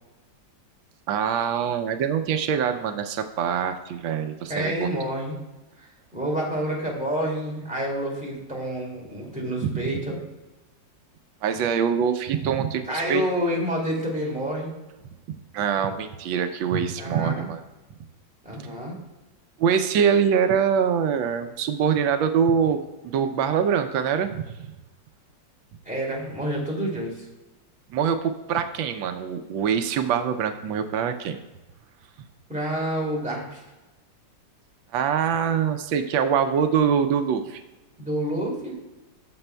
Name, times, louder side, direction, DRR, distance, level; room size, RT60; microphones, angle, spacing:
voice 1, 1.1-4.9 11.4-12.8 13.1-13.2 15.3-17.6 19.6-22.8 23.1-24.5 27.9-31.4 34.9-37.6, right 7 dB, 85° right, 7 dB, 1.4 m, -24 dB
voice 2, 4.5-5.4 5.8-10.2 12.9-14.7 17.0-17.5 18.4-18.9 25.8-27.3 32.5-33.6 38.0-38.7, equal, 5° right, -3 dB, 2.2 m, -28 dB
14.0 x 6.9 x 2.2 m, 1.1 s
omnidirectional pair, 2.0 m